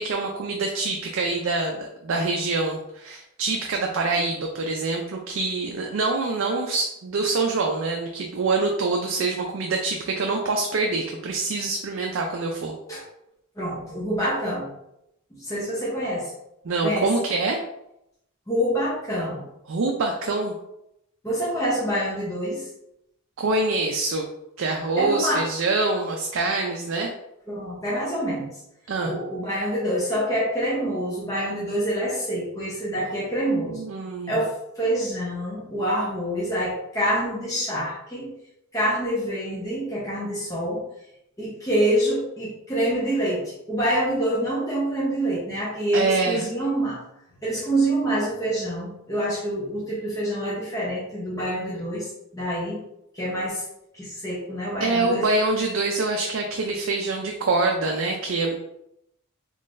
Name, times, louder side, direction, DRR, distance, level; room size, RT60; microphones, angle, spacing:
voice 1, 0.0-12.7 16.6-17.6 19.7-20.5 23.4-24.2 24.6-27.1 28.9-29.2 33.0-33.3 33.5-34.4 45.9-46.4 54.8-58.7, right 3 dB, 60° right, 1 dB, 0.4 m, -25 dB
voice 2, 13.6-14.7 15.4-16.3 16.8-17.1 18.5-19.4 21.2-22.7 25.0-25.4 27.5-28.5 29.0-33.8 34.3-38.3 38.7-40.8 41.4-43.4 43.7-47.0 47.4-52.8 53.1-53.6 53.9-55.2, right 1 dB, 15° left, -8 dB, 0.8 m, -26 dB
3.7 x 3.1 x 2.6 m, 0.82 s
head